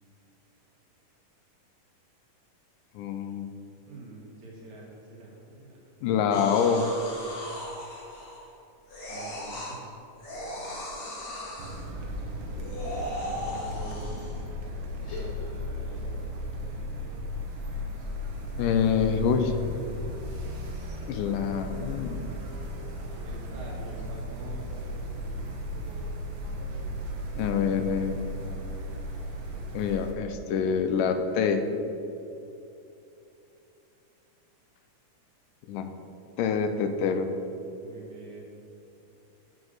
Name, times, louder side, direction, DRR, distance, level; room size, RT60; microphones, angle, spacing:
voice 1, 3.0-3.5 6.0-6.9 18.6-19.5 21.1-22.3 27.4-28.2 29.7-31.6 35.7-35.9 36.4-37.3, left 6 dB, 90° left, 7 dB, 2.2 m, -26 dB
voice 2, 3.9-5.8 9.1-9.8 13.3-14.2 14.9-16.1 16.7-16.9 23.2-25.1 37.8-38.4, right 2 dB, 65° right, -3 dB, 2.9 m, -45 dB
sound 1, 6.3-8.5 8.9-9.8 10.2-11.8 12.5-14.4 15.1-15.2, left 1 dB, 55° left, 3.1 m, -37 dB
sound 2, 11.6-30.1, left 1 dB, 90° right, 1.0 m, -36 dB
8.0 x 5.3 x 6.5 m, 2.8 s
omnidirectional pair, 3.7 m